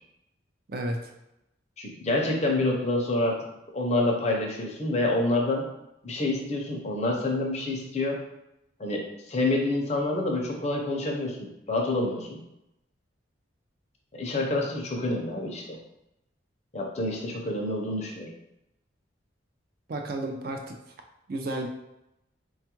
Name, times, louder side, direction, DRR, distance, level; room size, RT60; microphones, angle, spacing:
voice 1, 0.7-1.1 19.9-20.8 21.3-21.7, right 1 dB, 50° right, 3 dB, 0.4 m, -32 dB
voice 2, 1.8-3.4 3.7-5.7 6.0-8.2 8.8-12.4 14.1-15.8 16.7-18.3, left 2 dB, 35° left, 0 dB, 0.6 m, -27 dB
4.3 x 2.3 x 2.9 m, 0.88 s
head